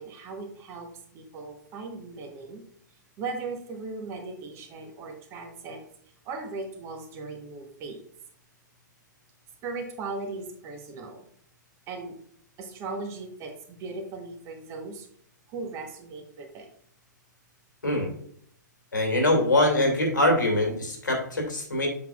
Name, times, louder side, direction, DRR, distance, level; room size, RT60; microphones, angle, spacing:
voice 1, 0.0-2.6 3.2-5.8 6.2-8.0 9.6-11.3 11.9-12.2 12.6-15.1 15.5-16.7, right 3 dB, 25° right, 4 dB, 1.2 m, -38 dB
voice 2, 18.9-21.9, left 1 dB, 75° left, 2 dB, 2.2 m, -23 dB
7.6 x 5.8 x 2.4 m, 0.64 s
figure-of-eight pair, 110°, 10 cm